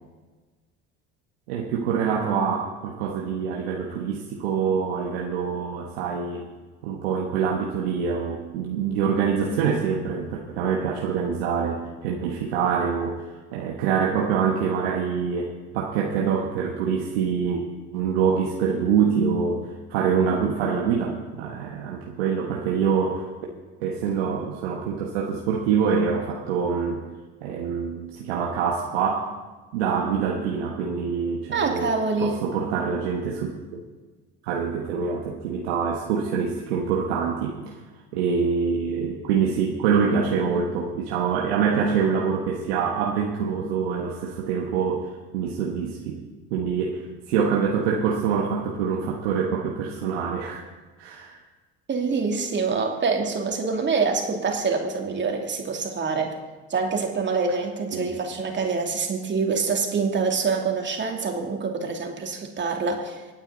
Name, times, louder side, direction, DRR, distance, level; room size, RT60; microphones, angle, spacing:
voice 1, 1.5-6.5 6.8-13.2 13.5-17.6 17.9-19.6 19.9-23.3 23.8-27.0 27.4-29.3 29.7-31.9 32.2-33.8 34.4-37.7 38.1-46.2 46.5-50.6 51.0-51.4 57.9-58.1, right 6 dB, 90° right, -1 dB, 1.4 m, -25 dB
voice 2, 31.5-32.4 51.9-56.3 56.7-63.2, right 4 dB, 40° right, 2 dB, 2.8 m, -25 dB
25.5 x 9.1 x 4.0 m, 1.3 s
supercardioid pair, 75°, 30 cm